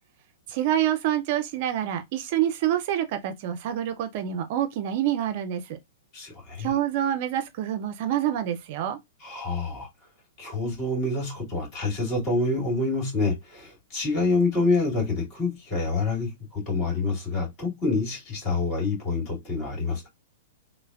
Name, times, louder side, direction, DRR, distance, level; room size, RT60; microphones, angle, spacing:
voice 1, 0.5-5.8 6.6-9.0, right 11 dB, 45° right, 0.4 m, -27 dB
voice 2, 6.1-6.7 9.2-9.9 10.4-20.1, left 3 dB, 30° left, 2.0 m, -27 dB
3.2 x 2.1 x 2.2 m
figure-of-eight pair, 110°, 0 cm